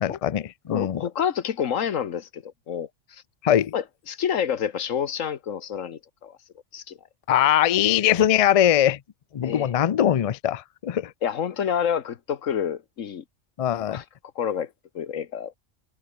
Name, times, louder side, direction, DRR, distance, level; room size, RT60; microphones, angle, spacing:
voice 1, 0.0-1.0 3.4-3.7 7.3-9.0 9.3-11.1 13.6-14.0, left 11 dB, 70° left, 0.3 m, -21 dB
voice 2, 0.7-3.2 3.7-6.4 6.7-7.0 9.4-9.7 11.2-13.2 13.9-14.0 14.3-15.6, left 8 dB, 90° left, 1.5 m, -28 dB
omnidirectional pair, 1.3 m